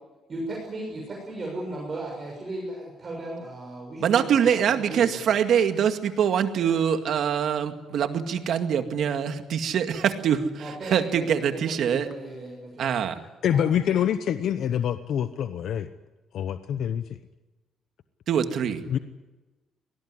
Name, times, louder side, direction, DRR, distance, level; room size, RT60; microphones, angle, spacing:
voice 1, 0.3-5.4 10.6-12.9 13.5-13.6, right 2 dB, 25° right, -2 dB, 6.7 m, -36 dB
voice 2, 4.0-12.1 12.8-13.2 18.3-18.8, right 8 dB, 60° right, 7 dB, 2.1 m, -24 dB
voice 3, 13.4-15.9 16.3-17.0 18.9-19.0, left 9 dB, 60° left, 11 dB, 0.8 m, -25 dB
25.0 x 19.0 x 9.8 m, 1.2 s
cardioid pair, 165°, 0 cm